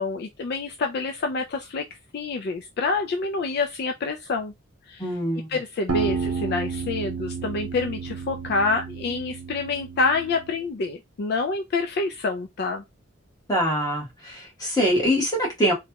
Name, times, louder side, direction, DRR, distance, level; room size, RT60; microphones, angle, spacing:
voice 1, 0.0-1.9 2.1-4.5 4.9-5.1 5.5-12.8, left 3 dB, 50° left, 0.3 m, -27 dB
voice 2, 5.0-5.5 13.5-15.7, equal, 20° left, 1.2 m, -24 dB
sound 1, 5.9-10.6, right 5 dB, 90° right, 0.8 m, -31 dB
3.1 x 2.2 x 2.8 m
head